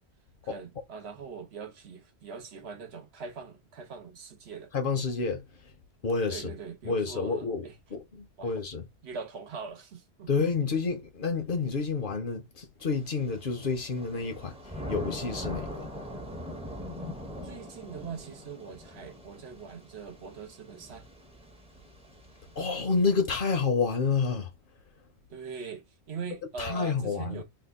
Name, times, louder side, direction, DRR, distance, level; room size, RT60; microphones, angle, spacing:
voice 1, 0.4-4.7 6.3-7.7 8.4-8.5 9.0-10.3 17.4-21.1 25.3-27.4, right 5 dB, 70° right, 1.1 m, -42 dB
voice 2, 4.7-5.4 6.0-6.5 6.9-8.9 10.3-14.6 14.9-15.8 22.6-24.5 26.6-27.4, left 4 dB, 55° left, 0.9 m, -29 dB
Thunder / Rain, 12.8-22.8, left 1 dB, 5° right, 0.7 m, -42 dB
2.8 x 2.4 x 3.6 m
omnidirectional pair, 1.1 m